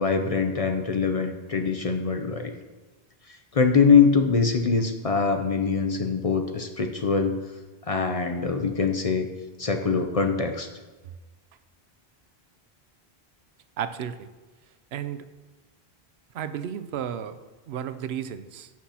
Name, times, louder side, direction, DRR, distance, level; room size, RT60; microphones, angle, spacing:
voice 1, 0.0-2.5 3.3-7.4 7.8-9.3 9.6-10.7, left 5 dB, 45° left, 5 dB, 0.5 m, -23 dB
voice 2, 13.8-14.3 14.9-15.3 16.3-17.4 17.7-18.7, right 9 dB, 80° right, 11 dB, 0.8 m, -33 dB
14.0 x 6.0 x 2.8 m, 1.2 s
omnidirectional pair, 1.1 m